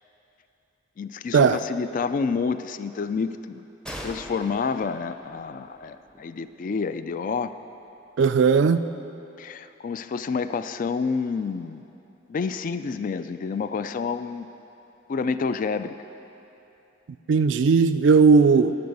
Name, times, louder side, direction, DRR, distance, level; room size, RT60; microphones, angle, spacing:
voice 1, 1.0-3.7 4.0-7.5 9.4-11.8 12.3-14.5 15.1-15.9, left 5 dB, 45° left, 12 dB, 0.3 m, -29 dB
sound 1, 3.9-7.4, equal, 5° left, 0.6 m, -43 dB
voice 2, 8.2-8.8 17.3-18.8, right 5 dB, 75° right, 11 dB, 0.4 m, -17 dB
12.5 x 6.5 x 5.4 m, 2.9 s
head